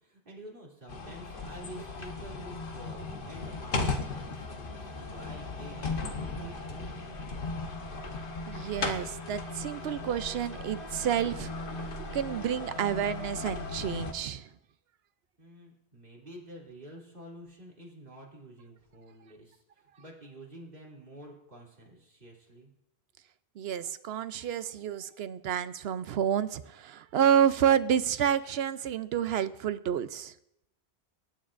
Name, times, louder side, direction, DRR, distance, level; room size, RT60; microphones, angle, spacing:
voice 1, 0.0-7.0 15.4-22.7, right 1 dB, 55° right, -3 dB, 3.2 m, -49 dB
sound 1, 0.9-14.1, left 3 dB, 60° left, 1.2 m, -37 dB
voice 2, 8.5-11.5 11.8-14.5 23.6-30.3, right 9 dB, 75° right, 13 dB, 0.8 m, -29 dB
23.0 x 9.3 x 2.5 m, 0.81 s
omnidirectional pair, 1.1 m